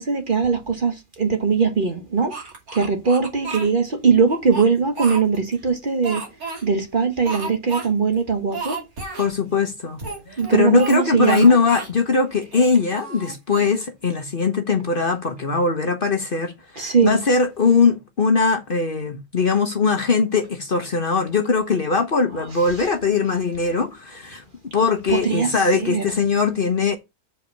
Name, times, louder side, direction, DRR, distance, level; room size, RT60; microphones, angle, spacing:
voice 1, 0.0-2.3 2.7-6.2 6.6-8.8 10.4-11.6 16.8-17.2 25.1-26.0, right 5 dB, 40° right, 1.3 m, -20 dB
Speech, 2.3-3.7 4.3-5.6 6.0-6.6 7.2-7.9 8.1-8.2 8.5-9.3 10.0-11.0 11.2-11.9 12.4-13.8, right 4 dB, 85° right, 3.2 m, -32 dB
voice 2, 9.2-10.0 10.3-24.4 24.7-27.0, left 4 dB, 45° left, 1.1 m, -21 dB
7.2 x 5.0 x 5.7 m
omnidirectional pair, 1.5 m